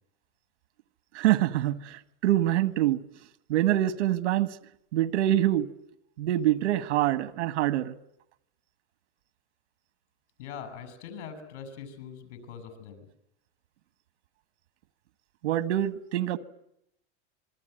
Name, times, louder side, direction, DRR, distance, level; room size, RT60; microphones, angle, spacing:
voice 1, 1.1-3.0 3.5-4.6 4.9-5.7 6.2-7.9 15.4-16.4, right 13 dB, 90° right, 1.7 m, -25 dB
voice 2, 10.4-13.1, left 7 dB, 80° left, 6.8 m, -42 dB
27.0 x 22.0 x 7.9 m
supercardioid pair, 160°, 34 cm